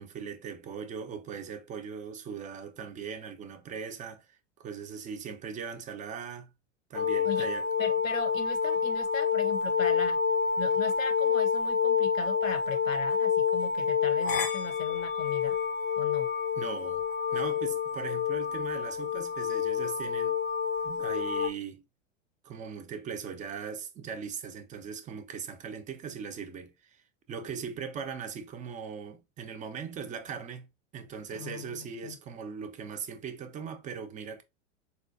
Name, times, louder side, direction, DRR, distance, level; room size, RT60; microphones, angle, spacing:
voice 1, 0.0-6.5 6.9-7.7 16.6-17.0 17.3-20.4 20.8-21.8 22.4-30.7 30.9-34.4, right 6 dB, 20° right, 0.5 m, -39 dB
sound 1, 6.9-21.5, left 6 dB, 25° left, 0.5 m, -28 dB
voice 2, 7.8-10.2 10.6-15.6 16.0-16.3 31.3-32.2, left 6 dB, 85° left, 0.8 m, -39 dB
4.2 x 2.2 x 2.5 m
hypercardioid pair, 100°, 39 cm